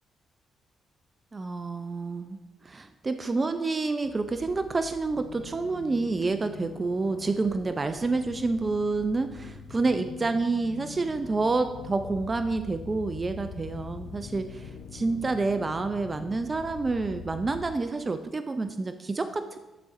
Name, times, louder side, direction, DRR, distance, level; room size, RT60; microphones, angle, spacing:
voice 1, 1.3-2.4 2.6-19.6, right 3 dB, 30° right, 9 dB, 0.3 m, -28 dB
sound 1, 4.0-17.8, left 6 dB, 75° left, 0.5 m, -44 dB
9.8 x 3.8 x 2.5 m, 1.1 s
supercardioid pair, 60°, 0 cm